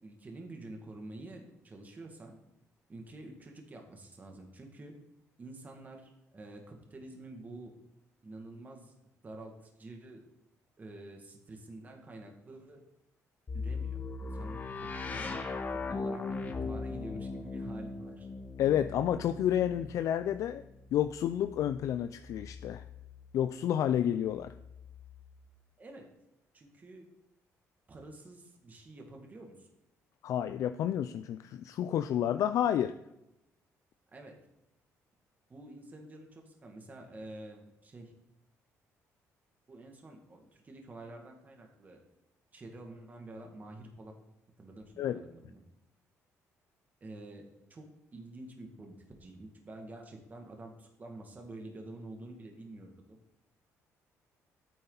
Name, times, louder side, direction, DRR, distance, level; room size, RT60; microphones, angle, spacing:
voice 1, 0.0-2.4 2.9-4.9 5.4-7.7 8.2-8.9 9.2-10.2 10.8-12.8 13.5-15.4 15.7-18.3 25.8-26.1 26.5-27.0 27.9-29.7 34.1-34.3 35.5-38.1 39.7-42.0 42.5-44.1 44.6-45.6 47.0-53.2, right 2 dB, 30° right, 2 dB, 2.0 m, -48 dB
sound 1, 13.5-23.3 24.3-25.3, left 4 dB, 30° left, 1.5 m, -40 dB
voice 2, 18.6-20.6 20.9-22.8 23.3-24.5 30.2-32.9 45.0-45.2, left 10 dB, 70° left, 10 dB, 0.4 m, -30 dB
13.0 x 9.3 x 4.0 m, 0.88 s
cardioid pair, 105°, 6 cm